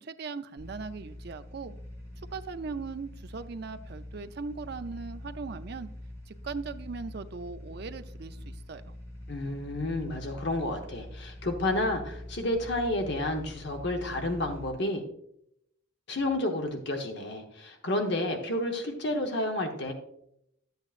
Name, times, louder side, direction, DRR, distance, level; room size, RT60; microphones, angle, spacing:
voice 1, 0.0-1.7 2.3-5.9 6.3-8.9, right 4 dB, 50° right, 10 dB, 0.4 m, -39 dB
sound 1, 0.6-14.7, left 1 dB, 15° left, 3.9 m, -44 dB
voice 2, 9.3-15.0 16.1-19.9, left 1 dB, 55° left, 3 dB, 1.0 m, -30 dB
11.5 x 8.1 x 2.5 m, 0.75 s
head